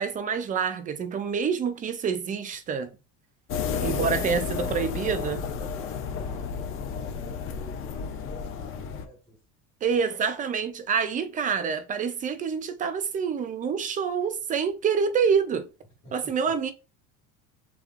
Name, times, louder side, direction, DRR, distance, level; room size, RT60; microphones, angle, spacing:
voice 1, 0.0-2.9 3.8-5.4 9.8-15.7 16.1-16.7, right 6 dB, 25° right, 0.5 m, -27 dB
sound 1, 3.5-9.0, left 6 dB, 40° left, 0.6 m, -32 dB
voice 2, 4.5-6.6 6.9-9.4 9.9-10.0 16.0-16.5, left 1 dB, 10° left, 1.4 m, -49 dB
5.1 x 3.3 x 2.4 m
cardioid pair, 150°, 34 cm